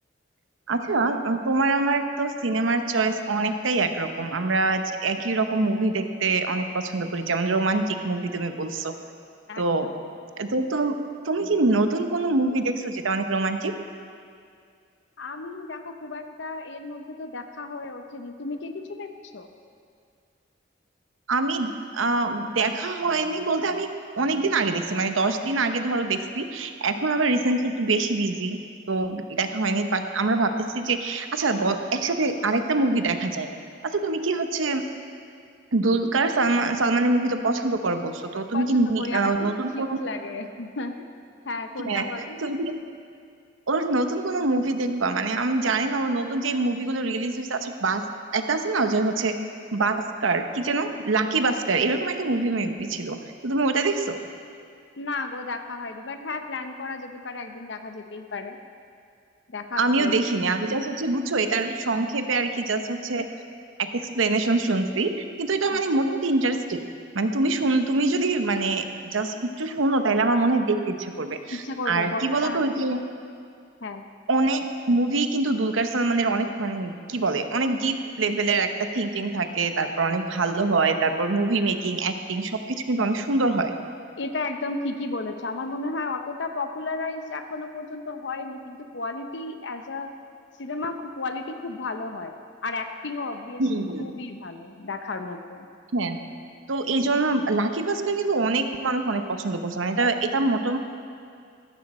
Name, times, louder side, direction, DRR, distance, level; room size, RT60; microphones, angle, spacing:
voice 1, 0.7-8.9 9.6-9.9 10.4-11.0 11.2-13.7 21.3-23.9 24.2-28.6 28.9-33.5 33.8-34.8 35.7-40.0 41.8-42.7 43.7-48.0 48.3-49.3 49.7-53.2 53.4-54.2 59.8-63.2 63.8-65.1 65.4-66.8 67.1-73.0 74.3-83.7 93.6-94.1 95.9-96.2 96.7-100.8, right 3 dB, 90° right, 7 dB, 0.8 m, -24 dB
voice 2, 9.5-9.9 15.2-19.5 38.5-40.9 41.5-42.4 55.0-58.6 59.5-60.2 65.7-65.8 71.5-72.8 73.8-74.0 84.2-90.1 90.6-92.3 92.6-93.6 94.0-95.7, left 3 dB, 65° left, 7 dB, 0.7 m, -33 dB
14.5 x 13.5 x 4.3 m, 2.3 s
head